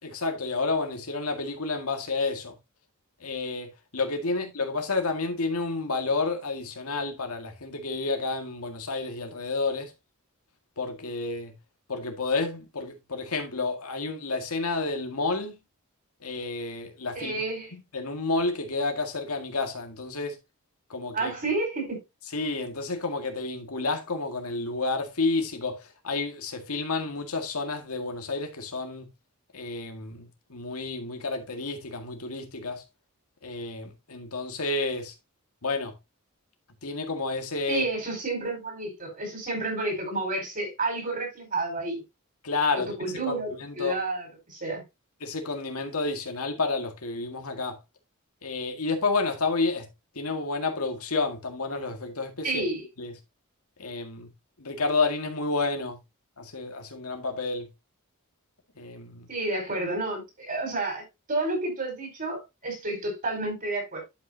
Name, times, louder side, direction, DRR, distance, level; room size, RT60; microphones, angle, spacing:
voice 1, 0.0-2.6 3.2-9.9 10.8-11.5 11.9-15.5 16.2-17.4 17.7-20.4 20.9-21.3 22.3-29.1 29.5-32.8 33.4-35.1 35.6-35.9 36.8-37.8 42.4-44.0 45.2-47.8 48.4-49.9 50.2-52.6 53.0-53.1 53.8-54.3 54.6-56.0 56.4-57.7 58.8-59.3, left 3 dB, 85° left, 2.0 m, -30 dB
voice 2, 17.1-17.7 21.1-22.0 37.7-42.0 42.7-43.5 43.7-44.8 52.4-52.8 59.3-61.0 61.3-64.0, right 2 dB, 40° right, 4.8 m, -30 dB
11.5 x 5.8 x 2.8 m
head